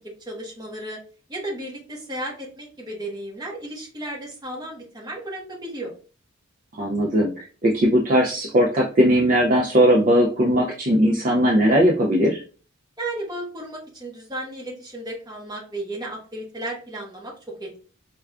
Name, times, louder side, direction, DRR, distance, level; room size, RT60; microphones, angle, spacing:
voice 1, 0.3-1.0 1.3-5.9 13.0-17.8, right 1 dB, 20° right, -3 dB, 1.0 m, -34 dB
voice 2, 6.8-12.4, equal, 40° right, -1 dB, 0.4 m, -19 dB
4.5 x 2.2 x 2.4 m, 0.37 s
head